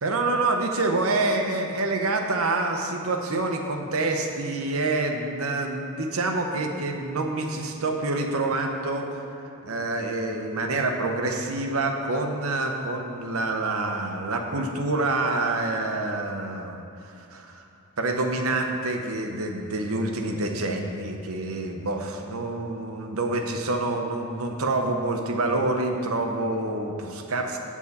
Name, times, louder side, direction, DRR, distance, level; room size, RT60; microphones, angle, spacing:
voice 1, 0.0-16.8 17.2-17.6 18.0-27.6, right 2 dB, 70° right, 4 dB, 0.8 m, -27 dB
8.3 x 7.3 x 4.1 m, 2.7 s
head